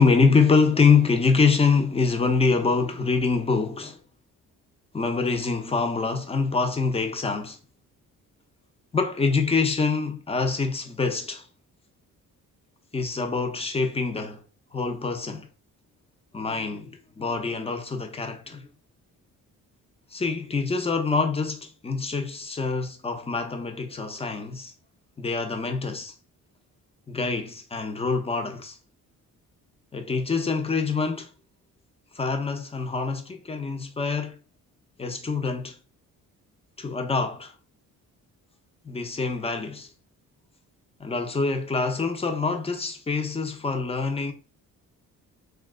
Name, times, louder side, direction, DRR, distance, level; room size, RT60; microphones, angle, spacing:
voice 1, 0.0-4.0 4.9-7.6 8.9-11.5 12.9-14.4 14.7-15.5 16.3-18.7 20.1-24.7 25.2-26.1 27.1-28.8 29.9-31.3 32.1-34.4 35.0-35.8 36.8-37.5 38.8-39.9 41.0-44.3, left 4 dB, 20° left, 0.6 m, -25 dB
2.9 x 2.3 x 3.6 m
cardioid pair, 105°, 34 cm